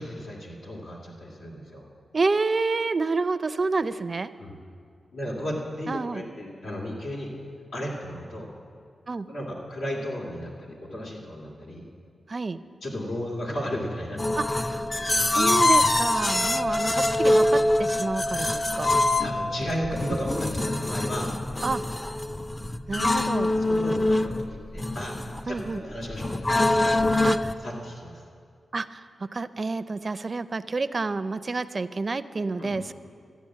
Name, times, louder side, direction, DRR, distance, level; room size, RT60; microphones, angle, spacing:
voice 1, 0.0-1.8 4.4-4.6 5.1-7.3 7.7-8.5 9.3-11.9 12.8-14.2 16.2-16.3 19.2-21.3 23.6-27.0 27.6-28.2 32.6-32.8, equal, 85° left, -4 dB, 2.5 m, -34 dB
voice 2, 2.1-4.3 5.9-6.2 9.1-9.3 12.3-12.6 14.3-14.9 15.2-18.9 21.6-21.8 22.9-23.5 25.5-25.8 27.2-27.6 28.7-32.9, right 3 dB, 50° right, 14 dB, 0.4 m, -29 dB
sound 1, 14.2-27.5, left 1 dB, 25° left, 0.5 m, -24 dB
13.0 x 8.4 x 7.4 m, 2.2 s
cardioid pair, 50°, 0 cm